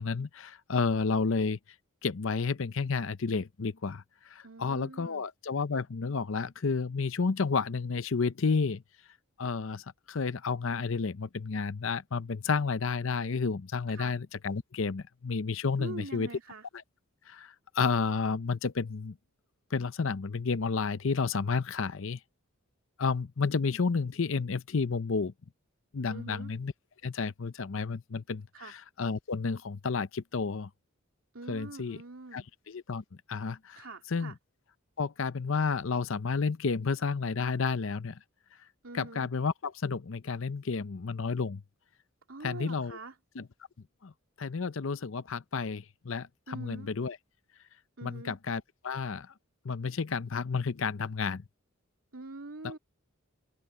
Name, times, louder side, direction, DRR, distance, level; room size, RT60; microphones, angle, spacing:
voice 1, 0.0-1.6 2.0-4.0 4.3-8.8 9.4-16.3 17.3-19.2 19.7-22.2 23.0-25.3 25.9-26.7 27.0-30.7 31.5-32.0 32.3-33.8 34.1-34.3 35.0-38.2 38.9-41.6 42.4-43.0 43.4-43.5 44.0-44.1 44.4-47.2 48.0-49.3 49.6-51.4 52.6-52.7, left 4 dB, 65° left, 0.6 m, -31 dB
voice 2, 4.4-5.3 13.9-14.1 15.8-16.7 26.1-26.5 28.5-28.7 31.3-32.5 33.8-34.4 38.8-39.3 42.3-43.2 46.5-46.9 48.0-48.4 52.1-52.8, right 2 dB, 70° right, 2.8 m, -44 dB
open air
head